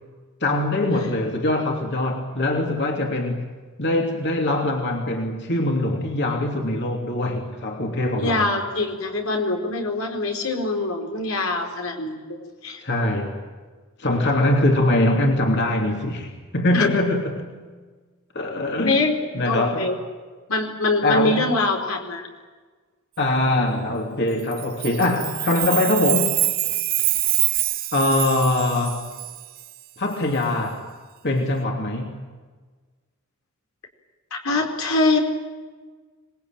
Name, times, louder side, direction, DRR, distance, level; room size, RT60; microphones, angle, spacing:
voice 1, 0.4-3.5 3.8-8.5 12.8-13.4 14.0-17.5 18.3-19.1 19.3-19.9 21.0-21.4 23.2-26.4 27.9-29.1 30.0-30.9 31.2-32.3, left 1 dB, 55° left, 2 dB, 3.1 m, -22 dB
voice 2, 8.2-12.8 16.7-16.9 18.8-20.0 20.5-22.3 34.3-35.2, left 2 dB, 85° left, 3 dB, 4.6 m, -24 dB
Chime, 24.5-29.6, right 15 dB, 45° right, 0.7 m, -25 dB
26.0 x 20.5 x 9.0 m, 1.4 s
head